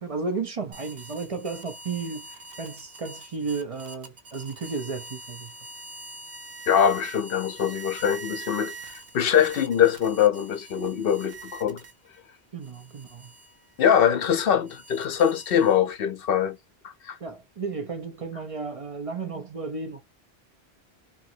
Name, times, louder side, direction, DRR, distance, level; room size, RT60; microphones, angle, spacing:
voice 1, 0.0-5.5 12.5-13.3 17.2-20.0, right 4 dB, 40° right, 0.7 m, -33 dB
sound 1, 0.7-12.2 12.6-16.0, right 3 dB, 65° right, 1.0 m, -44 dB
voice 2, 6.7-11.8 13.8-16.6 17.0-17.2, left 9 dB, 65° left, 0.8 m, -23 dB
3.0 x 2.7 x 2.7 m
omnidirectional pair, 1.1 m